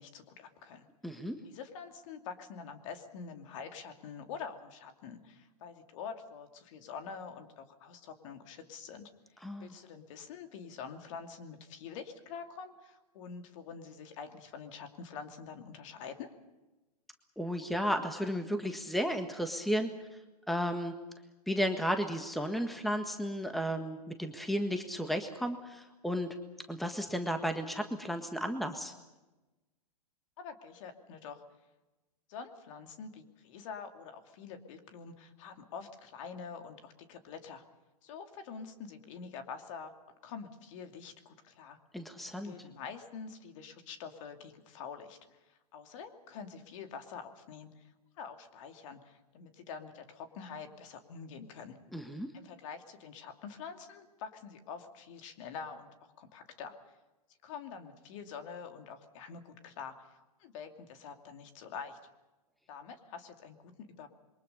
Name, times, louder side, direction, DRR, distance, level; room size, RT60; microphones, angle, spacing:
voice 1, 0.0-0.9 1.4-9.1 9.6-16.3 30.4-31.4 32.3-37.6 38.0-39.9 40.2-41.8 42.4-47.9 48.2-51.8 52.3-57.0 57.4-62.0 62.7-64.1, left 6 dB, 50° left, 6 dB, 2.7 m, -46 dB
voice 2, 1.0-1.4 9.4-9.7 17.4-19.9 20.5-20.9 21.5-26.3 26.7-28.9 41.9-42.5 51.9-52.3, equal, ahead, 7 dB, 1.5 m, -33 dB
27.5 x 23.0 x 5.5 m, 1.1 s
hypercardioid pair, 120°, 20 cm